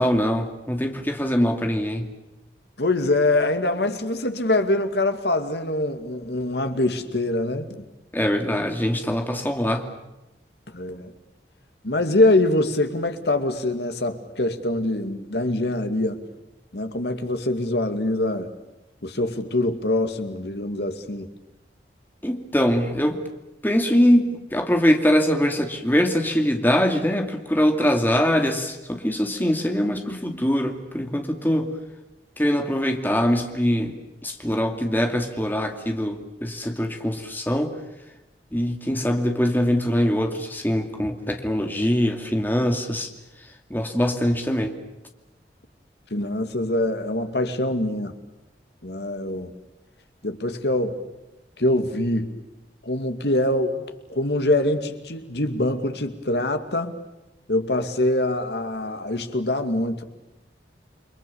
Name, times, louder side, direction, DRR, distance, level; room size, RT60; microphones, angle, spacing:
voice 1, 0.0-2.1 8.1-9.8 22.2-23.2 23.6-31.7 32.4-34.0 34.2-37.7 38.5-43.1 43.7-44.7, equal, 10° left, 4 dB, 2.5 m, -23 dB
voice 2, 2.8-7.8 10.7-11.1 11.8-16.2 16.7-18.5 19.0-21.3 46.1-48.2 48.8-49.5 50.2-51.0 51.6-52.3 52.8-57.0 57.5-60.0, left 1 dB, 70° left, 7 dB, 2.4 m, -24 dB
29.5 x 23.5 x 7.1 m, 0.98 s
head